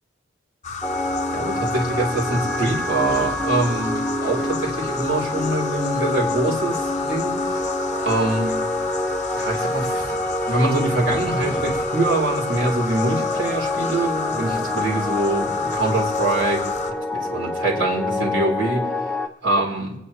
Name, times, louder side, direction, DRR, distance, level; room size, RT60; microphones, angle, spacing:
sound 1, 0.6-16.9, left 4 dB, 40° left, 0.9 m, -32 dB
sound 2, 0.8-19.3, left 2 dB, 5° left, 0.5 m, -26 dB
voice 1, 1.3-7.6 8.0-8.5 9.3-10.2 10.5-20.0, right 2 dB, 65° right, -5 dB, 4.1 m, -24 dB
sound 3, 2.5-5.5 5.8-6.3 6.9-7.2 7.9-8.6 9.4-12.1 12.4-12.5 13.7-14.0, equal, 20° right, 4.7 m, -40 dB
25.0 x 10.0 x 3.3 m, 0.86 s
head